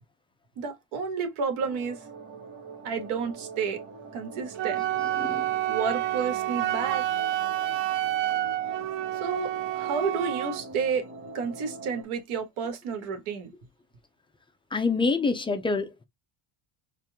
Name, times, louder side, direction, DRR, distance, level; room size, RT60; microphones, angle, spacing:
voice 1, 0.6-2.0 2.8-3.8 4.1-4.9 5.7-7.0 9.2-11.1 11.3-13.5, right 5 dB, 80° right, 1.8 m, -31 dB
sound 1, 1.6-12.0, right 3 dB, 20° right, 1.2 m, -43 dB
Wind instrument woodwind instrument, 4.6-10.6, right 14 dB, 60° right, 0.6 m, -29 dB
voice 2, 14.7-16.0, left 4 dB, 10° left, 0.3 m, -26 dB
4.4 x 2.4 x 3.5 m
cardioid pair, 160°, 49 cm